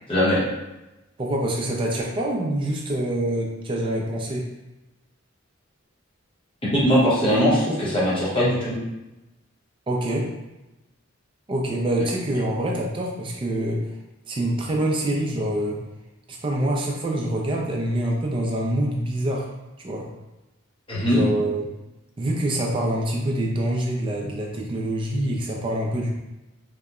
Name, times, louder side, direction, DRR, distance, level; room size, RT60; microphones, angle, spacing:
voice 1, 0.1-0.4 6.6-8.8 20.9-21.2, equal, 25° left, -8 dB, 0.8 m, -20 dB
voice 2, 1.2-4.5 9.9-10.3 11.5-13.8 14.3-15.8 16.3-19.5 19.8-20.1 21.1-21.6 22.2-26.1, right 1 dB, 25° right, -1 dB, 0.3 m, -25 dB
2.7 x 2.1 x 2.3 m, 1.0 s
head